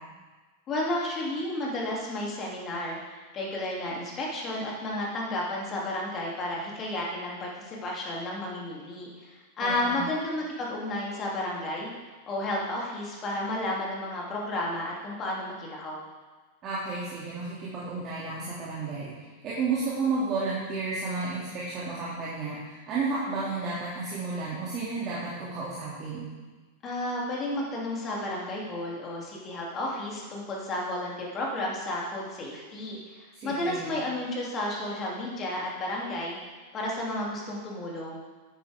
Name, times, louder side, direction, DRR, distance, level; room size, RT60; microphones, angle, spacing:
voice 1, 0.7-11.9 12.2-16.0 26.8-36.4 36.7-38.2, left 1 dB, 30° left, -3 dB, 2.8 m, -32 dB
voice 2, 9.6-10.0 16.6-26.3 33.3-33.9, right 3 dB, 30° right, -8 dB, 2.5 m, -32 dB
10.5 x 10.0 x 3.6 m, 1.3 s
figure-of-eight pair, 90°, 0 cm